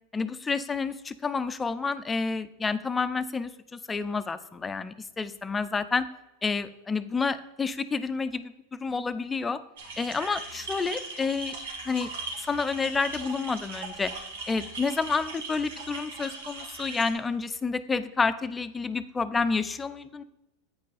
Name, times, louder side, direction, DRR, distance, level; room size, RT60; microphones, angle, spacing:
voice 1, 0.1-6.1 6.4-9.6 10.0-11.5 11.9-12.1 12.5-14.1 14.5-20.2, left 4 dB, 15° left, 12 dB, 0.5 m, -29 dB
sound 1, 9.8-17.1, right 3 dB, 80° right, 1.6 m, -39 dB
8.3 x 5.2 x 4.0 m, 0.97 s
hypercardioid pair, 105°, 0 cm